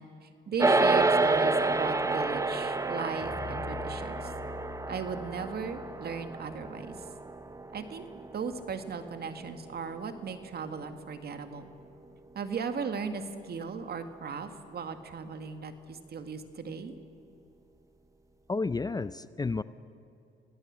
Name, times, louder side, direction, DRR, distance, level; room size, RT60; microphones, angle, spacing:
voice 1, 0.0-4.3 4.9-7.0 7.7-8.1 8.3-11.7 12.4-16.9, right 5 dB, 50° right, 8 dB, 1.9 m, -37 dB
sound 1, 0.6-10.1, right 3 dB, 15° right, 1.0 m, -29 dB
sound 2, 3.2-7.5, left 6 dB, 50° left, 4.4 m, -46 dB
voice 2, 18.5-19.6, left 3 dB, 20° left, 15 dB, 0.5 m, -31 dB
26.0 x 18.5 x 7.5 m, 2.7 s
cardioid pair, 90°, 20 cm